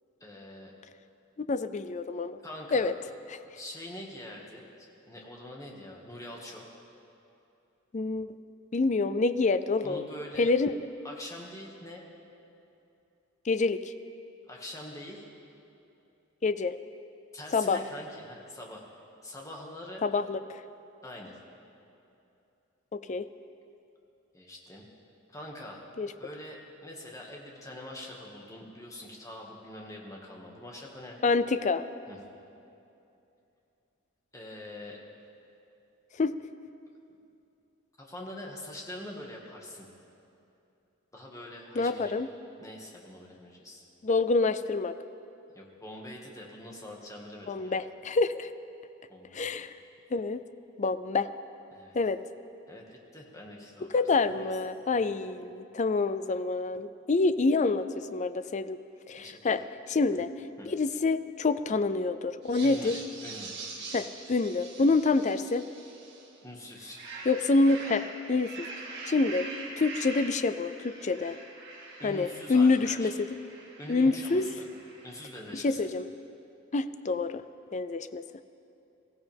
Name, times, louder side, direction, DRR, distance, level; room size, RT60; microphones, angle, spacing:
voice 1, 0.2-0.7 2.4-2.9 3.5-4.6 5.1-6.7 9.8-10.5 11.0-12.0 14.5-15.3 17.3-18.8 19.2-20.0 21.0-21.4 24.3-24.9 25.3-25.8 26.2-31.2 32.1-32.2 34.3-35.0 38.0-39.9 41.1-42.1 42.6-43.8 45.5-47.8 49.1-49.5 51.7-52.0 52.7-54.5 54.9-55.1 59.1-59.6 60.6-60.7 62.6-62.9 63.2-63.6 66.4-67.0 72.0-73.1 73.8-74.7 75.0-75.8, left 1 dB, 15° left, -2 dB, 1.9 m, -44 dB
voice 2, 1.4-2.4 2.7-2.9 3.3-3.4 7.9-8.4 8.7-10.0 10.4-10.8 13.5-13.9 16.4-16.8 17.5-17.8 20.0-20.6 22.9-23.3 26.0-26.1 31.2-31.8 36.2-36.4 41.8-42.3 44.0-44.9 47.5-48.5 49.3-49.7 50.1-50.4 50.8-51.3 51.9-52.2 53.9-57.9 58.1-58.8 59.1-59.6 59.9-60.3 60.6-63.0 63.9-65.6 67.3-68.7 69.1-69.5 69.8-71.4 72.0-73.3 73.9-74.5 75.5-76.1 76.7-77.4 77.7-78.2, left 3 dB, 35° left, 12 dB, 0.4 m, -27 dB
sound 1, 62.4-66.3 66.7-75.4, right 3 dB, 55° right, 2.2 m, -44 dB
23.0 x 15.0 x 3.5 m, 2.8 s
head